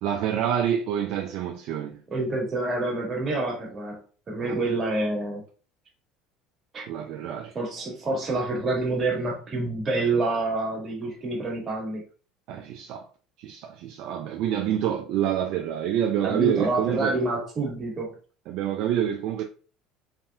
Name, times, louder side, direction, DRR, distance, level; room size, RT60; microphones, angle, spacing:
voice 1, 0.0-2.0 4.4-4.6 6.9-7.5 12.5-13.1 13.4-17.2 18.5-19.4, right 10 dB, 65° right, 0.3 m, -27 dB
voice 2, 2.1-5.4 6.7-6.8 7.5-12.0 16.2-18.1, right 2 dB, 35° right, 1.5 m, -27 dB
3.2 x 2.7 x 2.2 m
supercardioid pair, 85°, 0 cm